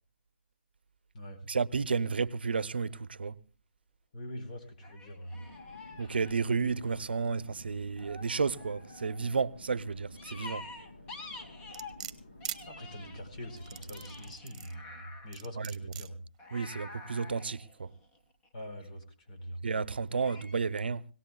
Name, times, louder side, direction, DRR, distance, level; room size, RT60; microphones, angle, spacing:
voice 1, 1.4-3.4 6.0-10.7 15.6-15.8 16.5-17.9 19.6-21.1, right 5 dB, 80° right, 0.7 m, -32 dB
sound 1, 2.4-2.6 4.8-7.1 8.0-9.4 10.2-12.0 12.4-15.4 16.4-18.6 20.1-20.6, left 3 dB, 20° left, 1.4 m, -48 dB
voice 2, 4.1-5.3 12.7-16.2 18.5-19.6, equal, 45° left, 4.3 m, -44 dB
sound 2, 5.3-14.4, left 1 dB, 75° left, 2.9 m, -52 dB
sound 3, 11.7-12.6 13.6-14.7 15.3-16.1 16.7-16.8, right 10 dB, 40° right, 1.1 m, -41 dB
22.0 x 18.0 x 2.3 m
hypercardioid pair, 150°, 5 cm